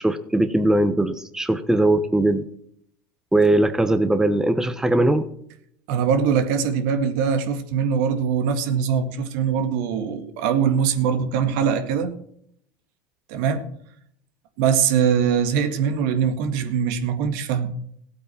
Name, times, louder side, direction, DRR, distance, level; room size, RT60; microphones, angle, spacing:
voice 1, 0.0-2.4 3.3-5.2, right 1 dB, 5° right, 1.1 m, -20 dB
voice 2, 5.9-12.1 13.3-13.7 14.6-17.8, right 7 dB, 70° right, 1.9 m, -22 dB
16.0 x 8.8 x 5.8 m
hypercardioid pair, 100°, 10 cm